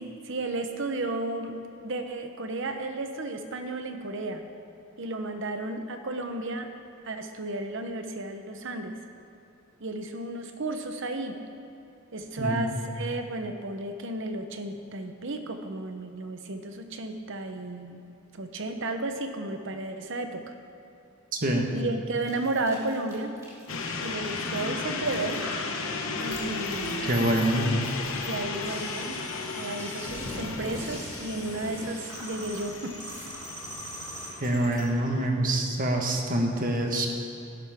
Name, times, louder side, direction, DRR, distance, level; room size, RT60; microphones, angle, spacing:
voice 1, 0.0-1.6 1.8-4.4 5.0-6.7 7.0-9.0 9.8-11.4 12.1-18.0 18.3-20.4 21.7-23.4 24.0-25.4 26.2-27.1 28.3-33.0, right 2 dB, 60° right, 6 dB, 1.0 m, -33 dB
voice 2, 12.4-12.7 21.4-21.7 27.1-27.7 34.4-37.1, right 1 dB, 40° right, 2 dB, 1.4 m, -25 dB
sound 1, 22.2-34.8, equal, 15° right, 2.4 m, -42 dB
sound 2, 23.7-35.3, left 3 dB, 75° left, 1.2 m, -35 dB
17.5 x 10.5 x 3.7 m, 2.8 s
head